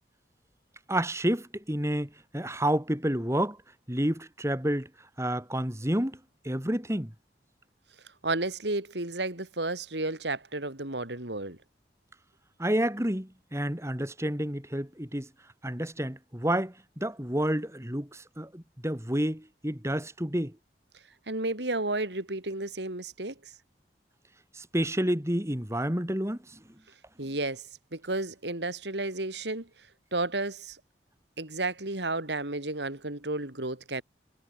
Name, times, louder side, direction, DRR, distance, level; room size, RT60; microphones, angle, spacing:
voice 1, 0.9-3.6 3.9-4.9 5.2-6.2 6.4-7.1 12.6-15.3 15.6-20.5 24.5-26.6, right 1 dB, 15° right, 3.6 m, -29 dB
voice 2, 8.2-11.6 21.3-23.3 27.2-27.6 27.9-29.7 30.1-30.8 31.4-34.0, right 2 dB, 80° right, 4.2 m, -32 dB
head